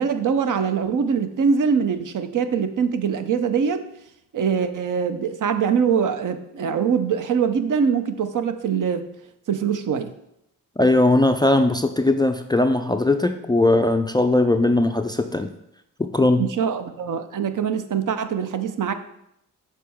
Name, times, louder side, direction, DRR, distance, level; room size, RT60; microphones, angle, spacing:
voice 1, 0.0-3.8 4.3-9.0 9.5-10.1 16.4-18.9, right 6 dB, 55° right, 9 dB, 0.7 m, -23 dB
voice 2, 10.8-15.5 16.0-16.4, left 2 dB, 10° left, 8 dB, 0.4 m, -19 dB
6.5 x 4.2 x 3.5 m, 0.78 s
supercardioid pair, 45°, 39 cm